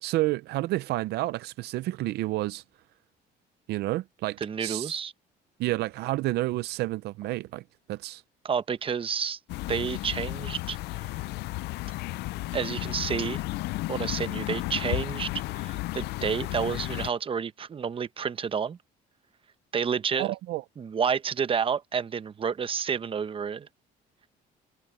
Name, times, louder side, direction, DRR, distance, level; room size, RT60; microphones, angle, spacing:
voice 1, 0.0-2.6 3.7-5.0 5.6-7.6 7.9-8.2 20.2-20.6, right 18 dB, 75° right, 0.5 m, -30 dB
voice 2, 4.4-5.1 8.4-9.4 9.7-11.1 12.5-13.4 13.9-15.3 15.6-18.8 19.7-20.3 20.8-23.7, right 6 dB, 30° right, 0.9 m, -30 dB
sound 1, 9.5-17.1, left 19 dB, 75° left, 0.4 m, -33 dB
cardioid pair, 110°, 17 cm